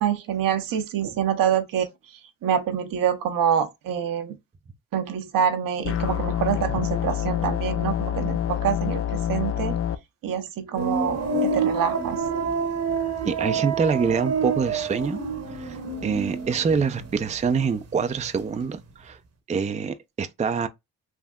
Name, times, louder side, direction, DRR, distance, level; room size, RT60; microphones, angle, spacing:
voice 1, 0.0-4.4 4.9-9.8 10.2-12.2, right 8 dB, 70° right, 0.8 m, -26 dB
sound 1, 5.8-10.0, left 10 dB, 40° left, 0.5 m, -26 dB
sound 2, 10.8-17.6 17.9-18.6, right 4 dB, 45° right, 0.9 m, -28 dB
voice 2, 13.2-15.2 15.5-19.2 19.5-20.7, right 5 dB, 20° right, 0.4 m, -25 dB
3.5 x 2.6 x 2.3 m
supercardioid pair, 55°, 34 cm